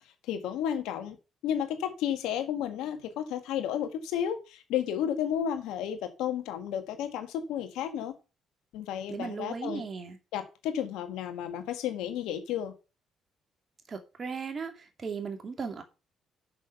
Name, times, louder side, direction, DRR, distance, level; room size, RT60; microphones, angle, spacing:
voice 1, 0.3-1.2 1.4-8.1 8.7-9.8 10.3-12.7, left 9 dB, 80° left, 1.6 m, -32 dB
voice 2, 9.1-10.2 13.9-15.8, right 5 dB, 45° right, 2.4 m, -37 dB
6.4 x 6.3 x 6.7 m
supercardioid pair, 60°, 0 cm